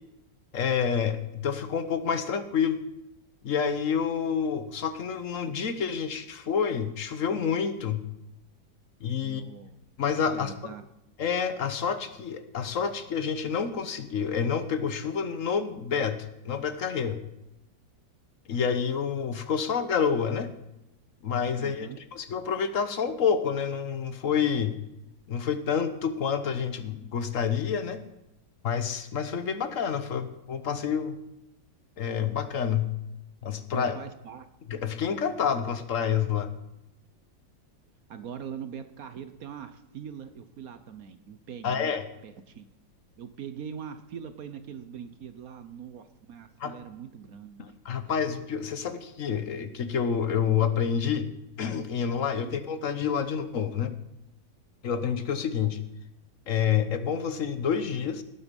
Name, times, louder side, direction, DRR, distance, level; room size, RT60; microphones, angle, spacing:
voice 1, 0.5-2.8 3.4-8.0 9.0-9.4 10.0-10.5 11.2-17.2 18.5-20.5 21.2-24.7 25.3-28.0 28.6-31.2 32.0-32.9 33.4-34.0 34.7-36.5 41.6-42.0 46.6-46.7 47.6-51.3 51.6-53.9 54.8-55.8 56.5-58.2, left 7 dB, 50° left, 10 dB, 1.2 m, -28 dB
voice 2, 9.2-9.8 10.3-10.8 21.6-22.0 33.7-34.5 38.1-42.0 42.2-42.7 43.2-47.6 52.4-52.6, right 8 dB, 60° right, 10 dB, 1.2 m, -42 dB
18.0 x 8.3 x 5.3 m, 0.90 s
omnidirectional pair, 2.0 m